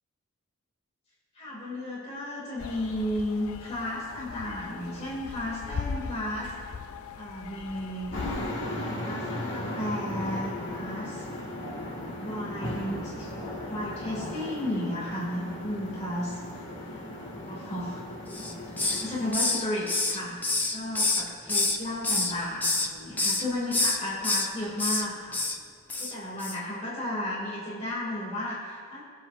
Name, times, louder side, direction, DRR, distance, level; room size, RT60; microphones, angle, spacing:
voice 1, 1.3-6.5 7.2-8.2 9.0-11.3 12.2-13.3 13.7-16.4 17.4-18.0 18.8-25.4 26.0-29.0, left 1 dB, 30° left, -7 dB, 2.7 m, -34 dB
sound 1, 2.6-8.5, left 5 dB, 80° left, 0.5 m, -39 dB
sound 2, 8.1-19.3, left 1 dB, 55° left, 2.0 m, -36 dB
Hiss, 18.3-19.1 19.3-21.8 22.0-22.9 23.2-23.4 23.7-24.5 24.8-25.0 25.3-25.6 25.9-26.1 26.4-26.6, left 2 dB, 10° left, 0.5 m, -27 dB
21.5 x 7.4 x 2.7 m, 2.1 s
head